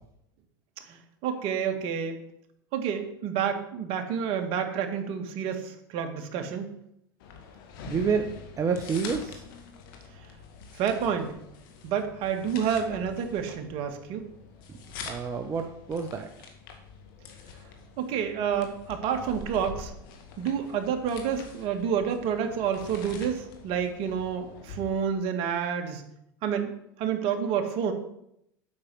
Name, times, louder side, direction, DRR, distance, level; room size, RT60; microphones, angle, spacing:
voice 1, 0.9-2.2 2.7-6.7 10.8-11.3 11.8-14.3 18.0-19.9 20.4-26.0 26.4-26.7 27.0-27.9, right 7 dB, 50° right, 6 dB, 1.8 m, -29 dB
sound 1, 7.2-25.0, left 5 dB, 70° left, 2.2 m, -45 dB
voice 2, 7.9-8.3 8.6-9.4 15.0-16.3, right 6 dB, 25° right, 4 dB, 1.0 m, -28 dB
8.6 x 5.9 x 7.8 m, 0.76 s
supercardioid pair, 105°, 12 cm